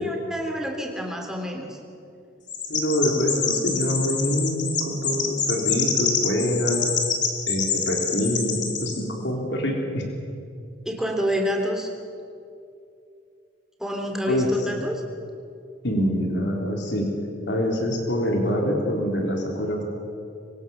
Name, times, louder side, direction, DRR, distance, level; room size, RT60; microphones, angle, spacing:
voice 1, 0.0-1.8 10.8-11.9 13.8-15.0, equal, 5° right, 2 dB, 3.2 m, -28 dB
Chirp tweet, 2.5-9.0, left 6 dB, 45° left, 3.1 m, -26 dB
voice 2, 2.7-6.9 7.5-10.0 14.3-14.5 15.8-17.1 17.4-19.8, equal, 70° left, 1 dB, 3.9 m, -25 dB
25.0 x 23.5 x 7.2 m, 2.5 s
head